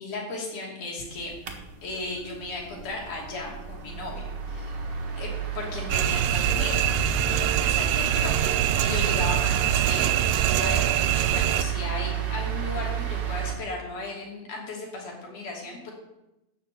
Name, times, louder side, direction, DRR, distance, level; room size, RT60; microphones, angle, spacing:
voice 1, 0.0-1.3 1.8-4.8 5.2-6.9 7.2-15.9, left 3 dB, 60° left, -2 dB, 4.2 m, -36 dB
sound 1, 1.1-13.5, right 8 dB, 60° right, 1.1 m, -31 dB
sound 2, 5.9-11.6, right 11 dB, 80° right, 2.2 m, -24 dB
12.5 x 6.1 x 8.3 m, 0.93 s
omnidirectional pair, 4.2 m